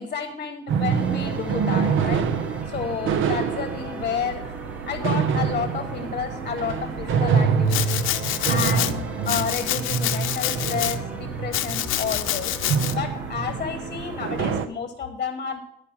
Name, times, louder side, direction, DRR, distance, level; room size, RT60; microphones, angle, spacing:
voice 1, 0.0-2.3 2.7-4.6 4.9-15.6, left 6 dB, 40° left, 7 dB, 1.1 m, -31 dB
sound 1, 0.7-14.7, right 6 dB, 80° right, 0.7 m, -26 dB
sound 2, 0.9-14.6, left 1 dB, 5° right, 1.6 m, -41 dB
Domestic sounds home sounds, 7.7-8.9 9.3-11.0 11.5-12.9, left 13 dB, 85° left, 0.6 m, -27 dB
11.5 x 5.0 x 7.2 m, 0.81 s
cardioid pair, 90°, 20 cm